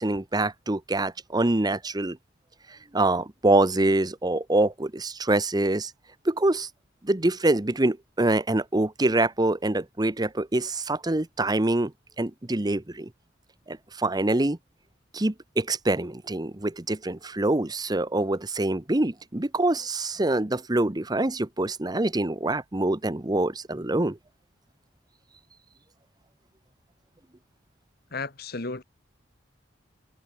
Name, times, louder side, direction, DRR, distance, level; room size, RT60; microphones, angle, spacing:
voice 1, 0.0-2.2 2.7-5.9 6.2-6.7 7.0-11.9 12.2-13.1 13.7-14.6 15.1-24.2, right 2 dB, 20° right, 0.9 m, -25 dB
voice 2, 28.1-28.8, left 3 dB, 55° left, 1.8 m, -33 dB
head